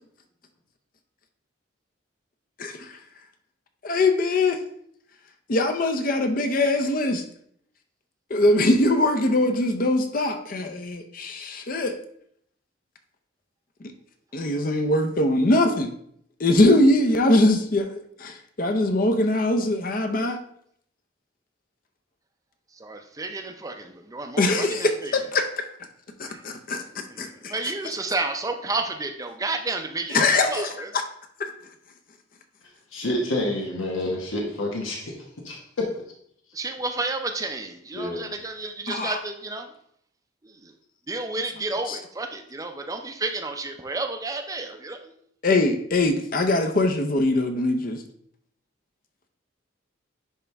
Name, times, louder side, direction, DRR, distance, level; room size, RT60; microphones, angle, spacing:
voice 1, 2.6-3.0 3.8-4.6 5.5-7.2 8.3-12.0 14.3-15.9 16.4-20.4 24.4-25.5 26.2-27.5 30.1-31.0 38.9-39.2 41.9-42.0 45.4-48.0, left 2 dB, 45° left, 6 dB, 0.6 m, -22 dB
voice 2, 22.7-25.1 26.3-26.4 27.1-30.2 30.5-30.9 36.5-39.7 40.4-40.7 41.1-45.1, right 3 dB, 15° right, 6 dB, 0.5 m, -31 dB
voice 3, 32.9-35.1 35.4-35.6 37.9-38.3, left 1 dB, 90° left, -1 dB, 1.1 m, -28 dB
10.0 x 3.3 x 3.4 m, 0.68 s
head